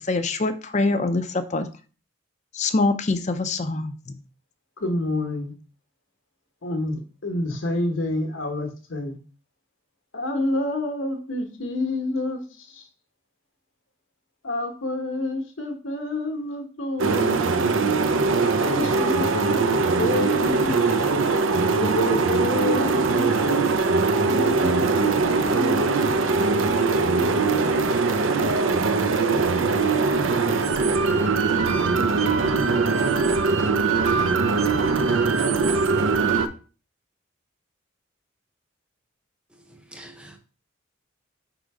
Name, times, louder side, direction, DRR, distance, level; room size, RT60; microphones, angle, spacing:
voice 1, 0.1-1.7 2.5-3.9, left 3 dB, 35° left, 0.5 m, -24 dB
voice 2, 4.8-5.5 6.6-9.2 10.1-12.9 14.4-17.9 18.6-19.6 20.0-20.8 21.6-23.6 24.3-27.6, left 2 dB, 70° left, 1.2 m, -29 dB
sound 1, 17.0-36.5, right 4 dB, 75° right, 0.6 m, -21 dB
voice 3, 39.5-40.4, right 1 dB, 5° right, 0.7 m, -46 dB
5.1 x 3.9 x 4.7 m
head